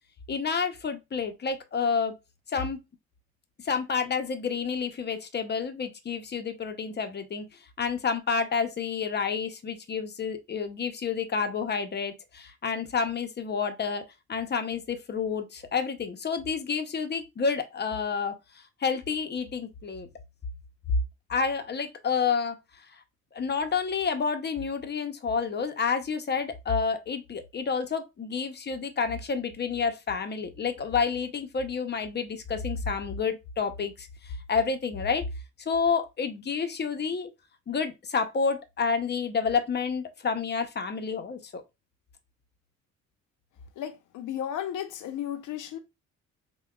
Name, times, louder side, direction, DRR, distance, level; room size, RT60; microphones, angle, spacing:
voice 1, 0.3-2.1 2.5-2.8 3.6-7.5 7.8-14.0 14.3-18.3 18.8-20.1 21.3-22.6 23.3-35.2 35.7-37.3 37.7-41.6, left 5 dB, 35° left, 0.7 m, -29 dB
voice 2, 43.8-45.8, left 10 dB, 80° left, 0.7 m, -34 dB
5.6 x 2.2 x 2.3 m
cardioid pair, 90°, 30 cm